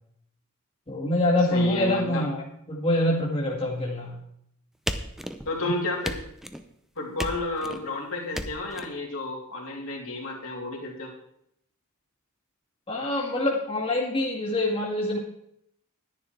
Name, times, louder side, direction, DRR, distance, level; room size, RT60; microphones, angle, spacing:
voice 1, 0.9-2.4 2.7-4.2 5.6-5.7 12.9-15.2, left 1 dB, 25° left, -4 dB, 2.1 m, -25 dB
voice 2, 1.5-2.2 5.4-6.2 7.0-11.1, left 2 dB, 65° left, -1 dB, 3.0 m, -31 dB
sound 1, 4.9-5.6 6.0-6.7 7.2-7.8 8.3-8.9, equal, ahead, 0.7 m, -34 dB
11.5 x 10.5 x 4.6 m, 0.73 s
head